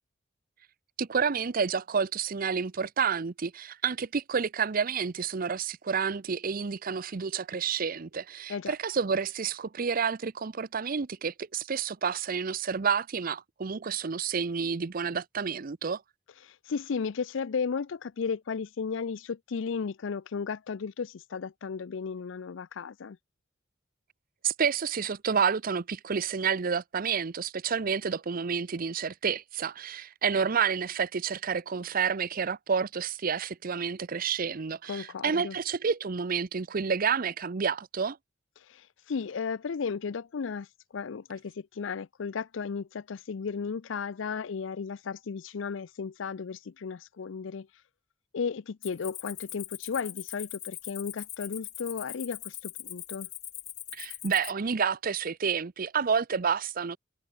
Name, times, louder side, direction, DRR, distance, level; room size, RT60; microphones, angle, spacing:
voice 1, 1.0-16.0 24.4-38.2 53.9-57.0, right 6 dB, 45° right, 0.6 m, -29 dB
voice 2, 16.4-23.2 34.9-35.6 38.6-40.7 40.9-47.7 48.3-53.3, left 5 dB, 70° left, 0.5 m, -34 dB
Cricket, 48.8-54.5, left 12 dB, 40° left, 2.1 m, -41 dB
head